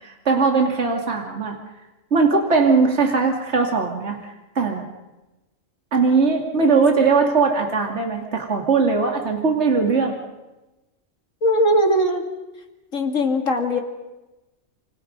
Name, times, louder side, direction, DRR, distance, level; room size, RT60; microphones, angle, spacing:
voice 1, 0.0-1.6 2.1-4.2 4.5-4.9 5.9-10.2, right 4 dB, 60° right, 2 dB, 2.9 m, -19 dB
voice 2, 11.4-12.2 12.9-13.8, equal, 85° left, 3 dB, 2.9 m, -19 dB
28.0 x 26.0 x 5.4 m, 1.0 s
omnidirectional pair, 1.3 m